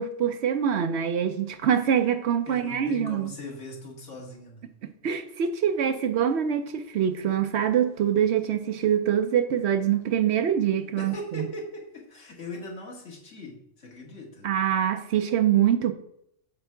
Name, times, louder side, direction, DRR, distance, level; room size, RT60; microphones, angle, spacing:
voice 1, 0.0-3.3 5.0-11.5 14.4-15.9, right 9 dB, 65° right, 9 dB, 0.8 m, -24 dB
voice 2, 2.5-4.7 11.0-14.5, left 1 dB, 70° left, 0 dB, 1.9 m, -40 dB
7.9 x 3.5 x 5.7 m, 0.73 s
omnidirectional pair, 1.3 m